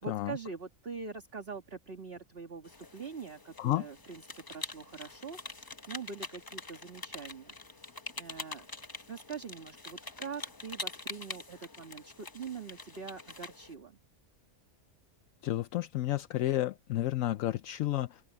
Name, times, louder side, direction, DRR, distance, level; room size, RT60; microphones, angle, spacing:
voice 1, 0.0-7.6 7.8-8.8 9.1-14.0, right 5 dB, 45° right, 2.0 m, -44 dB
sound 1, 2.6-13.7, left 3 dB, 20° left, 0.7 m, -45 dB
voice 2, 15.4-18.2, left 14 dB, 75° left, 1.0 m, -31 dB
open air
omnidirectional pair, 1.4 m